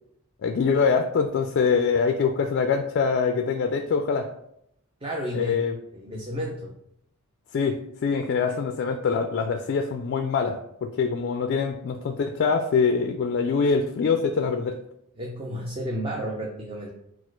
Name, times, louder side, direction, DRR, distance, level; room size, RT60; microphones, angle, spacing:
voice 1, 0.4-4.3 5.3-5.8 7.5-14.8, left 5 dB, 50° left, 6 dB, 0.3 m, -24 dB
voice 2, 5.0-5.6 5.9-6.7 15.2-16.9, equal, 25° right, -2 dB, 0.5 m, -32 dB
4.2 x 2.4 x 4.4 m, 0.75 s
head